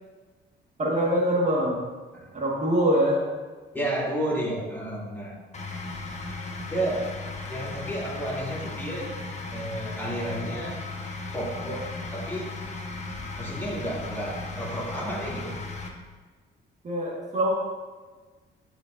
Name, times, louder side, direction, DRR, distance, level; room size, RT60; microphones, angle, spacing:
voice 1, 0.8-1.8 2.3-3.2 16.8-17.5, equal, 35° right, -4 dB, 1.7 m, -24 dB
voice 2, 3.7-5.4 6.7-7.1 7.5-9.2 9.5-10.8 11.3-12.5 13.4-15.6, right 1 dB, 10° left, -5 dB, 2.6 m, -31 dB
sound 1, 5.5-15.9, left 3 dB, 35° left, 1.2 m, -36 dB
15.0 x 5.3 x 2.6 m, 1.4 s
cardioid pair, 90°, 20 cm